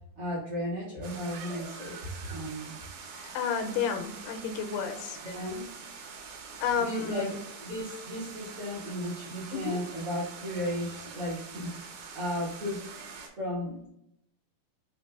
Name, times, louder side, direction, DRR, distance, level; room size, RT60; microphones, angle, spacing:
voice 1, 0.1-2.8 5.2-5.7 6.8-7.3 7.6-12.9 13.4-13.9, equal, 50° right, -8 dB, 1.8 m, -35 dB
sound 1, 1.0-13.3, right 5 dB, 75° right, 2.3 m, -45 dB
voice 2, 3.1-5.2 6.6-7.4 9.5-9.8, left 6 dB, 90° left, 6 dB, 2.6 m, -31 dB
5.7 x 2.9 x 2.3 m, 0.76 s
omnidirectional pair, 4.5 m